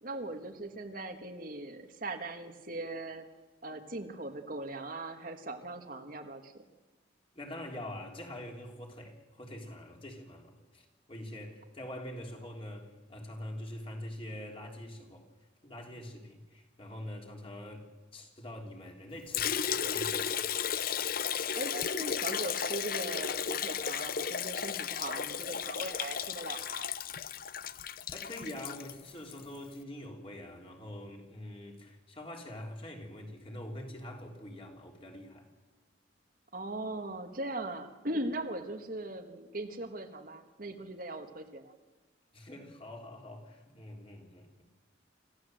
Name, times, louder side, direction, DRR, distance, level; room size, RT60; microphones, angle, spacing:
voice 1, 0.0-3.2 3.6-6.6 21.5-26.9 36.5-41.7, right 2 dB, 50° right, 5 dB, 1.6 m, -39 dB
voice 2, 7.3-15.2 15.6-17.9 18.1-20.5 27.7-27.8 28.1-35.5 42.3-44.6, left 1 dB, 30° left, 1 dB, 3.4 m, -44 dB
Liquid, 19.3-29.4, left 8 dB, 50° left, 0.6 m, -34 dB
27.0 x 15.0 x 7.8 m, 1.2 s
head